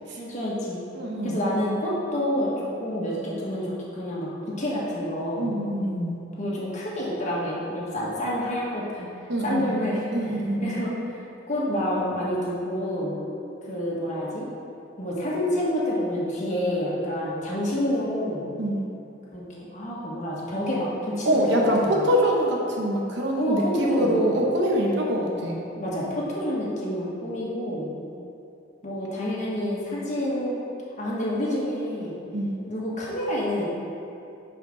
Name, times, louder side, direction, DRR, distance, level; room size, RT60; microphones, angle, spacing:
voice 1, 0.2-0.8 1.2-5.6 6.4-9.1 9.4-11.0 11.5-13.2 13.6-14.5 15.0-18.5 19.3-22.1 23.4-24.3 25.8-27.9 28.8-30.5 31.0-32.1 32.7-33.6, equal, 40° left, -6 dB, 1.7 m, -28 dB
voice 2, 0.9-1.4 5.4-6.2 9.3-10.8 18.6-18.8 21.2-25.6 32.3-32.5, equal, 65° right, -1 dB, 1.0 m, -25 dB
10.0 x 5.1 x 3.8 m, 2.7 s
head